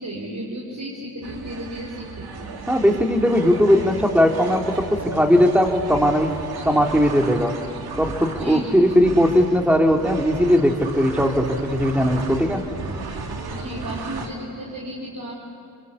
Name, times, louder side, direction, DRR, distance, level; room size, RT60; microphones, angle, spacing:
voice 1, 0.0-2.5 6.5-6.7 8.3-8.9 13.5-15.3, equal, 55° right, -3 dB, 4.8 m, -34 dB
sound 1, 1.2-14.3, right 4 dB, 75° right, 2.7 m, -34 dB
voice 2, 2.7-4.6 5.1-6.3 6.7-7.5 8.0-12.6, equal, 5° right, 2 dB, 3.3 m, -18 dB
29.5 x 23.0 x 8.6 m, 2.5 s
cardioid pair, 60°, 37 cm